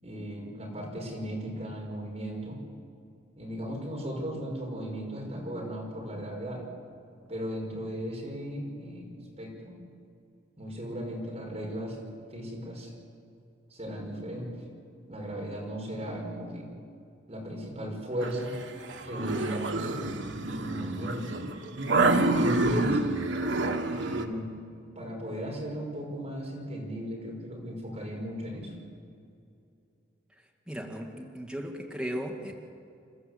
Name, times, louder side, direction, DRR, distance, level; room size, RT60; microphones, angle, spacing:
voice 1, 0.0-2.6 3.4-6.6 7.3-9.8 10.6-12.0 12.3-12.9 13.7-14.5 15.1-16.7 17.3-18.5 19.0-20.1 20.5-21.3 22.3-23.0 23.9-24.5 25.0-28.7, equal, 35° right, -2 dB, 5.6 m, -36 dB
sound 1, 18.2-24.3, right 2 dB, 75° right, 1.6 m, -28 dB
voice 2, 30.7-32.5, equal, 5° right, 1 dB, 2.0 m, -36 dB
29.0 x 13.5 x 8.2 m, 2.5 s
head